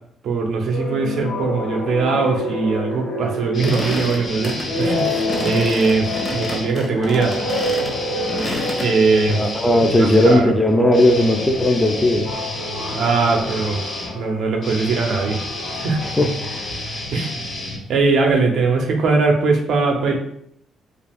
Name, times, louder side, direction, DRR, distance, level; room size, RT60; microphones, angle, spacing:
voice 1, 0.2-5.1 5.4-7.3 8.7-9.4 10.0-10.5 12.8-13.8 14.1-15.4 15.8-16.0 17.1-17.4 17.9-20.2, right 4 dB, 70° right, 2 dB, 0.6 m, -20 dB
sound 1, 0.7-17.1, left 1 dB, 75° left, 0.9 m, -29 dB
sound 2, 3.5-6.7 7.2-18.3, left 2 dB, 55° left, 1.2 m, -31 dB
sound 3, 3.6-8.9, left 1 dB, 35° left, 0.8 m, -29 dB
voice 2, 9.3-12.3 16.2-16.7, left 1 dB, 15° left, 4 dB, 0.4 m, -16 dB
2.4 x 2.3 x 3.4 m, 0.71 s
cardioid pair, 90°, 0 cm